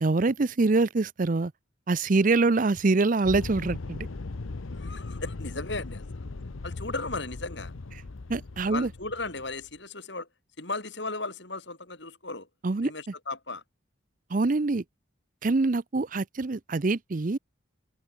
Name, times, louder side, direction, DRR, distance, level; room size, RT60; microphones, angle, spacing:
voice 1, 0.0-1.5 1.9-4.1 8.3-8.9 12.6-12.9 14.3-14.8 15.4-17.4, right 3 dB, 40° right, 0.6 m, -24 dB
sound 1, 3.2-9.7, left 3 dB, 90° left, 0.8 m, -38 dB
voice 2, 4.7-6.3 6.6-7.7 8.6-10.3 10.6-12.5 12.8-13.6, left 3 dB, 60° left, 5.4 m, -36 dB
open air
head